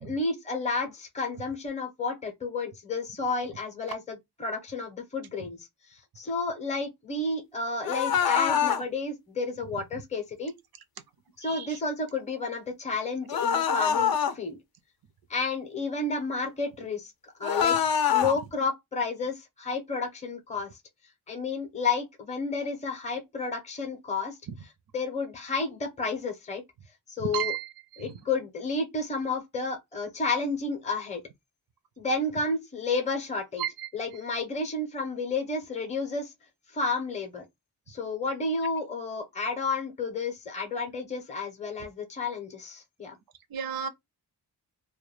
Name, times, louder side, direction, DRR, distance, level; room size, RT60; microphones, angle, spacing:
voice 1, 0.0-5.7 6.2-10.5 11.4-14.6 15.3-17.1 17.4-17.8 18.1-20.7 21.3-24.4 24.9-26.6 27.2-27.6 28.0-31.2 32.0-33.6 33.9-36.3 36.7-37.4 37.9-43.2, left 3 dB, 15° left, 0.6 m, -31 dB
sound 1, 7.8-8.8 13.3-14.3 17.4-18.3, left 7 dB, 60° left, 0.5 m, -24 dB
voice 2, 11.4-11.8 27.2-28.1 33.6-33.9 43.5-43.9, right 9 dB, 60° right, 0.5 m, -33 dB
2.2 x 2.1 x 3.1 m
wide cardioid pair, 135°, 40 cm